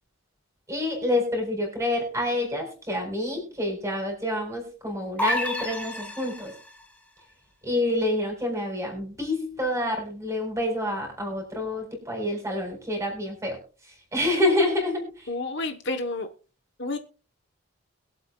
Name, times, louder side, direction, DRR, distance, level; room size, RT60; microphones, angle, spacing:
voice 1, 0.7-6.5 7.6-13.6 13.9-15.3, left 1 dB, 15° right, 4.4 m, -28 dB
sound 1, 5.2-6.8, left 2 dB, 5° left, 1.3 m, -30 dB
voice 2, 15.3-16.3 16.8-17.0, left 2 dB, 50° left, 1.0 m, -30 dB
22.0 x 7.9 x 2.3 m
head